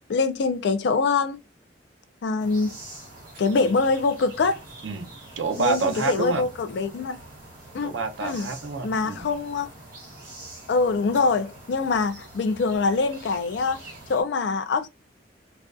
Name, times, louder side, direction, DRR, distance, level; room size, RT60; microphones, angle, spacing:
voice 1, 0.0-1.4 2.2-2.8 3.4-4.6 5.6-7.2 7.7-7.9 8.2-8.5 8.8-9.7 10.7-13.8 14.1-14.9, left 4 dB, 65° left, 0.4 m, -24 dB
sound 1, 2.4-14.2, right 2 dB, 50° right, 1.0 m, -44 dB
voice 2, 4.8-6.4 7.8-9.3, right 4 dB, 90° right, 0.6 m, -28 dB
2.5 x 2.2 x 2.4 m
head